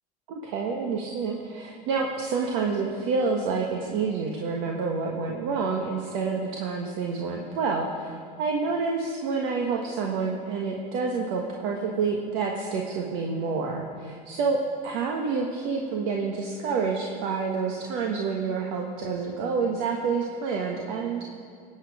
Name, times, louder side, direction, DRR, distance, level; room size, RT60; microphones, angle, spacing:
voice 1, 0.3-21.2, right 4 dB, 70° right, 1 dB, 1.5 m, -28 dB
18.0 x 9.2 x 5.0 m, 2.4 s
supercardioid pair, 100°, 20 cm